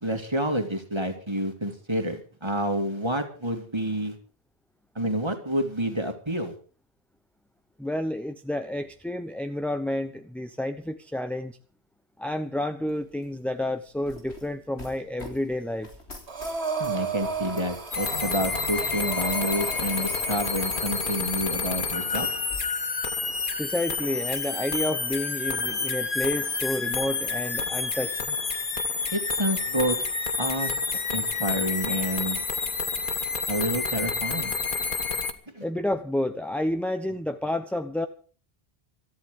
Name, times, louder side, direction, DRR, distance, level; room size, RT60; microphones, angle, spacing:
voice 1, 0.0-4.1 4.9-6.5 16.8-22.3 29.1-30.0 30.4-30.7 31.1-32.4 33.5-34.5 35.5-35.6, equal, 25° right, 5 dB, 2.7 m, -29 dB
voice 2, 7.8-11.6 12.2-15.9 23.6-28.4 35.6-38.1, left 1 dB, ahead, 7 dB, 0.8 m, -30 dB
sound 1, 12.9-30.0, left 2 dB, 80° left, 4.1 m, -49 dB
Breathing, 16.3-21.2, right 5 dB, 70° right, 2.5 m, -34 dB
sound 2, 17.9-35.3, left 4 dB, 50° left, 1.6 m, -29 dB
22.0 x 14.0 x 3.8 m, 0.39 s
omnidirectional pair, 1.1 m